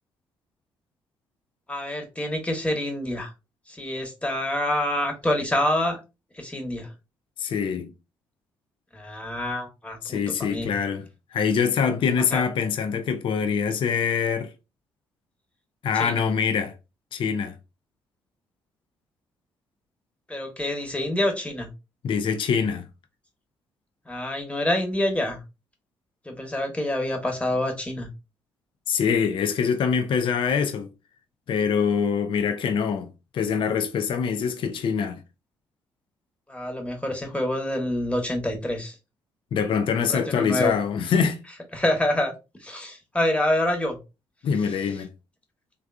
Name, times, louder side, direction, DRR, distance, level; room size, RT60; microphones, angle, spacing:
voice 1, 1.7-3.3 3.7-6.0 6.3-6.9 8.9-10.7 12.3-12.5 15.9-16.3 20.3-21.7 24.1-25.4 26.2-28.1 36.5-38.9 40.1-40.8 41.7-42.3 42.6-44.0, left 1 dB, 10° left, 1.1 m, -27 dB
voice 2, 7.4-7.9 10.0-14.5 15.8-16.7 17.1-17.5 22.0-22.9 28.9-30.9 31.5-35.2 39.5-41.4 44.4-45.1, left 6 dB, 50° left, 0.4 m, -24 dB
3.3 x 2.3 x 2.3 m
hypercardioid pair, 45°, 11 cm